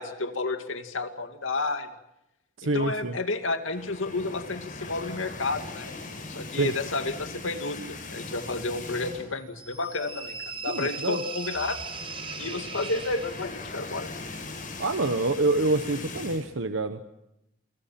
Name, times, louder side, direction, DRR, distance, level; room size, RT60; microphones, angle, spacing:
voice 1, 0.0-1.9 2.6-5.9 6.3-11.8 12.4-14.1, left 3 dB, 85° left, 6 dB, 2.3 m, -31 dB
voice 2, 2.6-3.1 6.6-6.7 10.7-11.2 14.8-17.1, right 2 dB, 75° right, 9 dB, 1.2 m, -26 dB
sound 1, 3.6-9.5 9.8-10.0 10.3-10.4 11.4-16.5, left 3 dB, 45° left, 6.6 m, -40 dB
sound 2, 9.6-13.7, right 5 dB, 30° right, 4.2 m, -39 dB
29.0 x 25.0 x 5.9 m, 0.83 s
head